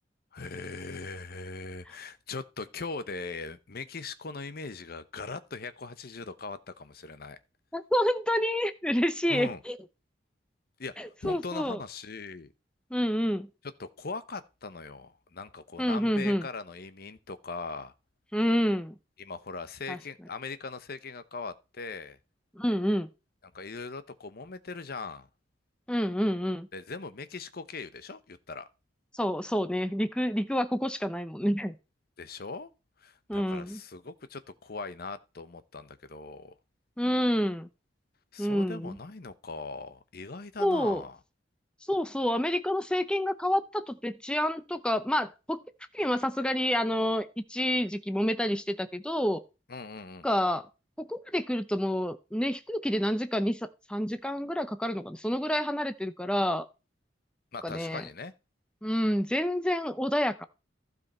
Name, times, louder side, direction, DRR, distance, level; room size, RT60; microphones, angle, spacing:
voice 1, 0.3-7.4 9.3-9.6 10.8-10.9 11.2-12.5 13.8-17.9 19.2-22.2 23.5-25.3 26.7-28.7 32.2-32.7 33.0-36.5 38.3-41.2 49.7-50.3 57.5-58.3, left 4 dB, 55° left, 0.9 m, -40 dB
voice 2, 7.7-9.8 11.0-11.8 12.9-13.5 15.8-16.5 18.3-18.9 19.9-20.0 22.6-23.1 25.9-26.7 29.1-31.8 33.3-33.8 37.0-37.7 38.4-39.0 40.6-41.0 41.9-45.6 45.9-49.4 50.2-50.7 51.0-56.7 57.6-58.0 58.8-60.4, equal, 5° left, 0.7 m, -28 dB
15.0 x 5.3 x 4.3 m
head